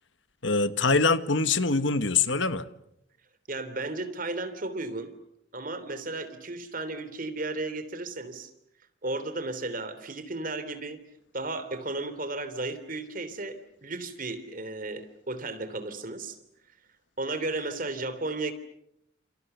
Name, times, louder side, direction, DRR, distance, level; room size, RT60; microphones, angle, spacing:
voice 1, 0.4-2.7, left 4 dB, 65° left, 1.6 m, -24 dB
voice 2, 3.5-5.1 5.5-8.5 9.0-11.0 11.3-16.4 17.2-18.5, right 2 dB, 40° right, 3.2 m, -34 dB
29.5 x 28.5 x 6.9 m
head